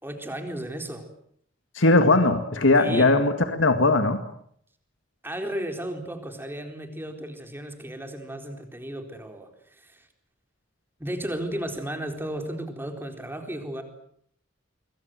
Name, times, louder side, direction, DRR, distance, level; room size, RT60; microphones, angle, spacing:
voice 1, 0.0-1.1 2.8-3.1 5.2-10.1 11.0-13.8, right 1 dB, 10° right, 5 dB, 4.1 m, -34 dB
voice 2, 1.8-4.2, left 2 dB, 90° left, 7 dB, 2.2 m, -19 dB
26.5 x 23.5 x 7.8 m, 0.67 s
head